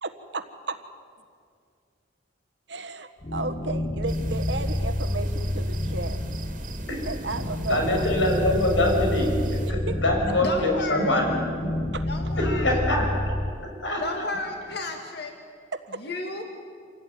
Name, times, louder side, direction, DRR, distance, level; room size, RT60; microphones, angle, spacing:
voice 1, 0.0-0.8 2.7-6.2 7.0-8.1 9.9-10.0 11.9-12.0 15.7-16.0, right 3 dB, 65° right, 8 dB, 1.5 m, -34 dB
sound 1, 3.2-13.5, left 1 dB, 35° left, 1.0 m, -29 dB
sound 2, 4.1-9.7, right 1 dB, 45° right, 2.1 m, -37 dB
voice 2, 7.7-11.8 12.4-13.3 13.8-14.2, left 1 dB, 85° left, 1 dB, 6.1 m, -24 dB
voice 3, 10.4-11.1 12.1-12.7 14.0-15.3 16.0-16.4, left 2 dB, 60° left, 3 dB, 2.2 m, -32 dB
26.5 x 16.5 x 9.5 m, 2.2 s
head